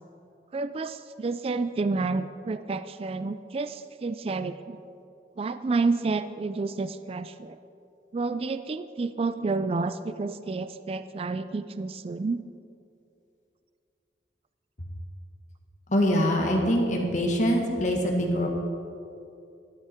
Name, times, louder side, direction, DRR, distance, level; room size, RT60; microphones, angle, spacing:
voice 1, 0.5-4.8 5.4-7.6 8.1-12.4, right 3 dB, 35° right, 12 dB, 0.3 m, -30 dB
voice 2, 15.9-18.5, equal, 45° left, 0 dB, 1.6 m, -24 dB
13.0 x 11.5 x 4.4 m, 2.6 s
head